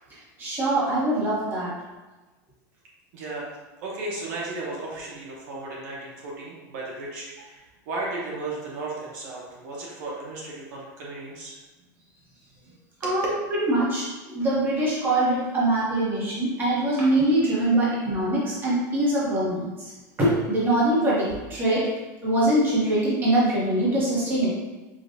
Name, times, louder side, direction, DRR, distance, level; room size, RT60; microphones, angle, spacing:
voice 1, 0.4-1.7 13.0-13.3 13.6-14.1 14.3-19.9 20.2-21.8 22.2-24.5, right 1 dB, 20° right, -7 dB, 1.2 m, -23 dB
voice 2, 3.1-3.4 3.8-11.6 13.0-13.2 17.7-17.9, right 2 dB, 65° right, -4 dB, 1.0 m, -35 dB
5.0 x 2.5 x 2.7 m, 1.2 s
supercardioid pair, 160°, 10 cm